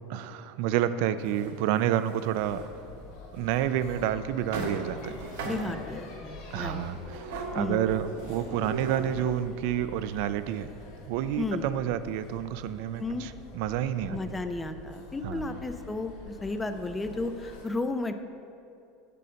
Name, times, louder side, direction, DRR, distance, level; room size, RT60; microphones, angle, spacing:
voice 1, 0.1-2.7 3.3-5.2 6.5-10.7 11.1-14.4 15.2-15.6, right 11 dB, 60° right, 13 dB, 0.4 m, -29 dB
sound 1, 1.2-2.7 3.4-3.5 3.9-4.1 4.5-6.0 7.1-9.4, right 3 dB, 85° right, 1.2 m, -38 dB
sound 2, 2.3-17.6, left 3 dB, 75° left, 2.1 m, -46 dB
voice 2, 5.4-6.8 7.6-7.8 11.4-11.7 13.0-13.3 14.1-18.2, left 2 dB, 10° left, 9 dB, 0.4 m, -33 dB
7.5 x 6.7 x 5.1 m, 2.6 s
supercardioid pair, 150°, 0 cm